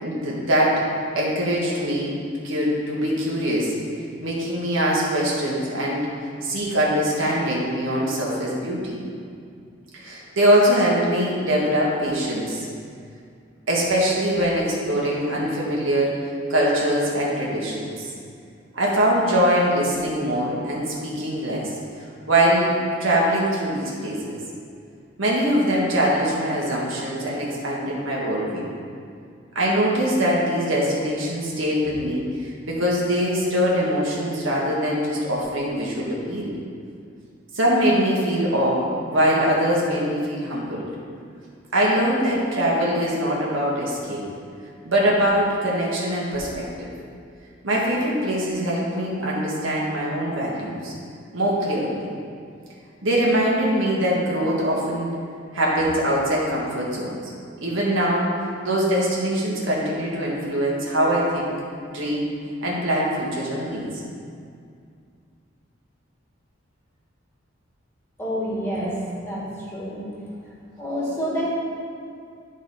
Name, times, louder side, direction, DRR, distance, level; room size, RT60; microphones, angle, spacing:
voice 1, 0.0-0.8 1.1-2.2 2.4-3.7 4.2-6.1 6.4-9.0 9.9-12.6 13.7-18.1 18.7-21.7 22.3-22.7 23.0-24.4 25.2-28.7 29.5-36.5 37.5-40.9 41.7-44.2 44.8-46.9 47.6-50.9 51.3-52.1 53.0-55.1 55.5-57.2 57.6-58.3 58.6-61.5 61.9-62.3 62.6-63.9, equal, 80° right, -4 dB, 1.7 m, -22 dB
voice 2, 68.2-70.1 70.4-71.5, equal, 10° left, -8 dB, 2.0 m, -28 dB
12.0 x 4.1 x 4.0 m, 2.3 s
head